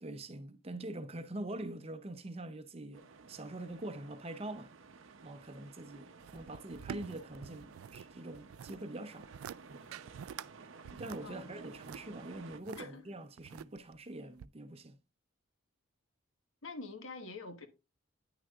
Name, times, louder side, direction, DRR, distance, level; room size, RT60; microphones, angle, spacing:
voice 1, 0.0-4.7 5.2-9.3 10.9-15.0, right 1 dB, 30° right, 0.6 m, -44 dB
sound 1, 2.9-12.6, right 4 dB, 70° right, 0.7 m, -54 dB
sound 2, 6.2-8.1 8.3-8.8 9.2-9.6 9.9-10.5 10.8-12.8 13.4-14.0 14.4-14.5, right 8 dB, 85° right, 0.3 m, -47 dB
voice 2, 16.6-17.7, left 3 dB, 70° left, 1.3 m, -45 dB
9.9 x 6.2 x 2.4 m
head